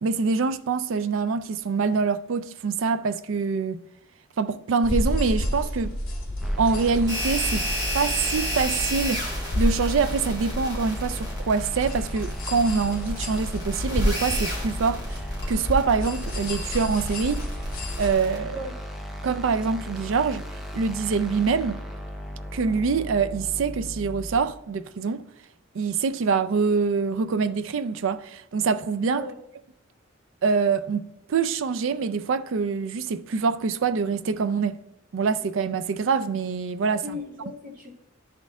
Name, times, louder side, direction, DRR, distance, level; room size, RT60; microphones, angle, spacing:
voice 1, 0.0-3.8 4.4-5.9 6.6-7.7 7.9-9.3 9.6-15.2 15.5-17.5 18.0-18.6 19.2-20.5 20.7-21.8 22.5-25.2 25.7-29.2 30.4-31.0 31.3-34.8 35.1-37.0, right 5 dB, 70° right, 0.4 m, -25 dB
sound 1, 4.8-18.1, equal, 45° left, 1.8 m, -30 dB
sound 2, 6.4-24.4, equal, ahead, 0.6 m, -37 dB
sound 3, 7.1-18.4, equal, 20° right, 1.8 m, -32 dB
voice 2, 36.9-37.9, left 2 dB, 40° right, 1.4 m, -37 dB
11.0 x 4.2 x 3.5 m
head